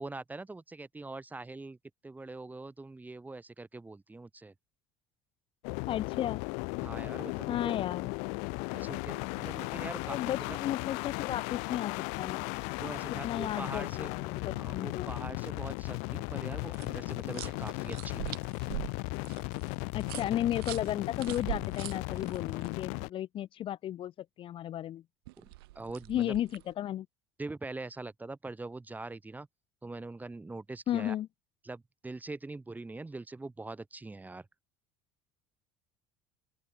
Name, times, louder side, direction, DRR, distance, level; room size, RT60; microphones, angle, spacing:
voice 1, 0.0-1.8 2.0-4.5 6.8-7.7 8.7-10.6 12.8-14.1 14.5-18.4 25.4-25.5 25.8-26.3 27.4-29.5 29.8-31.2 31.6-34.5, right 3 dB, 15° right, 2.1 m, -43 dB
sound 1, 5.6-23.1, left 36 dB, 75° left, 0.9 m, -36 dB
voice 2, 5.9-6.4 7.5-8.1 10.0-12.5 13.2-15.1 19.9-25.0 26.1-27.1 30.9-31.3, left 12 dB, 45° left, 0.8 m, -34 dB
sound 2, 16.7-22.7 25.3-26.7, right 21 dB, 85° right, 2.9 m, -43 dB
open air
supercardioid pair, 90°, 12 cm